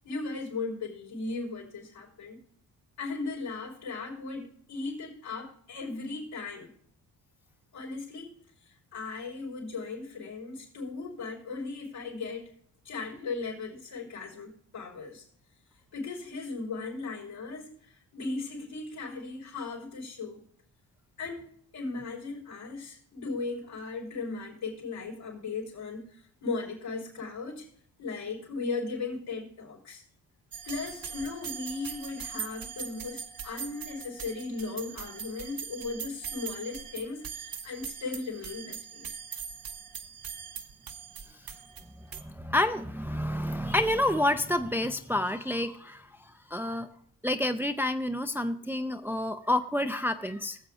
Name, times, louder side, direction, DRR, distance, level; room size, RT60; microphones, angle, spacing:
voice 1, 0.0-2.4 3.0-6.7 7.7-8.4 8.6-12.5 12.8-15.3 15.9-20.4 21.2-27.7 28.0-30.0 30.6-39.2, left 3 dB, 75° left, -2 dB, 4.6 m, -37 dB
sound 1, 30.5-42.2, right 7 dB, 55° right, 1.2 m, -41 dB
voice 2, 42.1-46.9 47.2-50.6, left 1 dB, 5° right, 8 dB, 0.6 m, -29 dB
20.0 x 7.3 x 2.5 m, 0.65 s
supercardioid pair, 65°, 42 cm